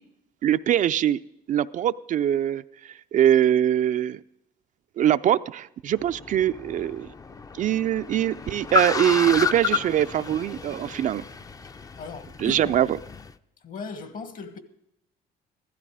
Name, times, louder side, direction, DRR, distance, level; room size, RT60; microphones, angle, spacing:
voice 1, 0.4-1.2 1.5-4.2 5.0-7.1 7.5-11.2 12.4-13.0, right 11 dB, 50° right, 0.4 m, -23 dB
Car, 5.9-13.3, left 4 dB, 20° left, 0.5 m, -31 dB
voice 2, 11.6-12.7 13.6-14.6, left 4 dB, 50° left, 1.6 m, -38 dB
15.5 x 12.5 x 4.8 m
cardioid pair, 110°, 17 cm